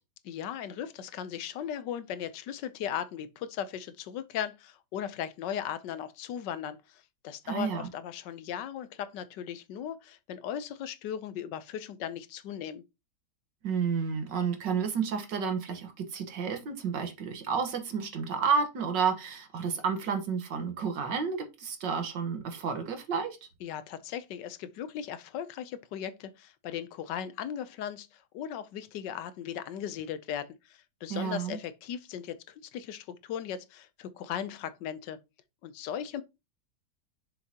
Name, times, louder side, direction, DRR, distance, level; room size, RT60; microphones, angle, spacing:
voice 1, 0.2-12.8 23.6-35.2 35.6-36.2, left 9 dB, 80° left, 1.3 m, -37 dB
voice 2, 7.5-7.9 13.6-23.4 31.1-31.6, right 6 dB, 80° right, 2.0 m, -31 dB
7.0 x 6.5 x 2.8 m
omnidirectional pair, 1.9 m